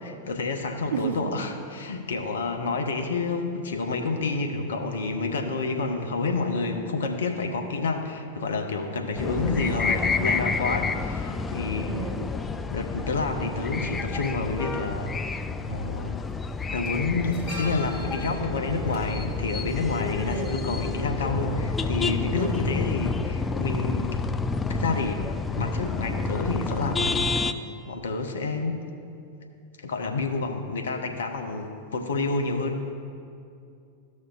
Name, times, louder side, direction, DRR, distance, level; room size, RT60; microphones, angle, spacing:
voice 1, 0.0-11.9 12.7-16.2 16.7-24.2 24.7-25.3 25.5-27.4 27.9-28.8 29.8-32.9, left 3 dB, 65° left, 4 dB, 0.7 m, -29 dB
voice 2, 0.9-1.4 11.9-12.3 20.2-20.7 22.3-22.7, right 6 dB, 60° right, 6 dB, 0.7 m, -32 dB
sound 1, 9.2-27.5, left 4 dB, 15° left, 0.3 m, -29 dB
sound 2, 14.3-14.4 15.7-15.9 16.2-20.5 20.8-20.9, left 1 dB, 40° left, 1.9 m, -42 dB
13.5 x 6.3 x 2.4 m, 2.5 s
figure-of-eight pair, 90°, 0 cm